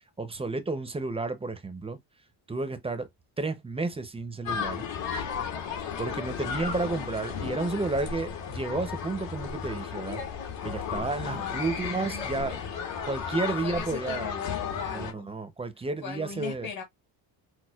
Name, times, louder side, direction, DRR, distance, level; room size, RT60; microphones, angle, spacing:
voice 1, 0.2-2.0 2.5-3.1 3.4-4.9 6.0-10.2 10.6-12.6 13.0-14.3 14.9-16.7, right 3 dB, 15° right, 0.5 m, -31 dB
sound 1, 4.5-15.1, left 7 dB, 80° left, 2.3 m, -34 dB
voice 2, 6.4-7.0 11.2-12.7 13.4-15.3 16.0-16.8, left 7 dB, 45° left, 1.3 m, -39 dB
6.2 x 2.2 x 2.2 m
cardioid pair, 140°, 45 cm